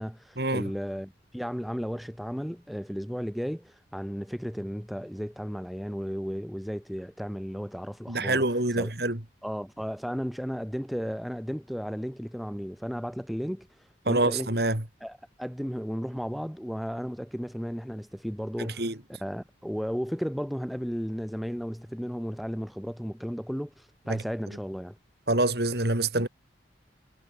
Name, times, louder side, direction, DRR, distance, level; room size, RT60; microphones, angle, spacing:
voice 1, 0.0-8.9 9.4-13.7 14.1-14.5 15.0-18.9 19.2-25.0, equal, ahead, 3.5 m, -34 dB
voice 2, 8.1-9.2 14.1-14.8 18.8-18.9 24.1-24.2 25.3-26.3, right 2 dB, 60° right, 3.2 m, -26 dB
head